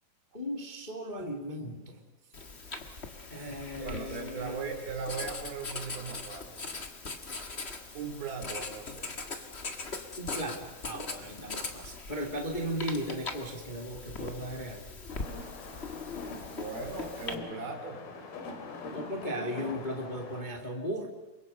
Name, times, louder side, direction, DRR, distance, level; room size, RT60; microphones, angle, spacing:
voice 1, 0.3-2.0 3.3-4.7 10.2-14.9 18.9-21.1, equal, 20° left, 2 dB, 1.5 m, -36 dB
Writing, 2.3-17.3, left 3 dB, 45° left, 0.8 m, -41 dB
voice 2, 3.8-6.6 7.9-9.1 11.2-11.3 16.4-18.1, right 5 dB, 75° right, 4 dB, 5.0 m, -38 dB
sound 1, 15.1-20.4, left 3 dB, 75° left, 4.6 m, -43 dB
28.0 x 24.0 x 5.4 m, 1.1 s
omnidirectional pair, 4.3 m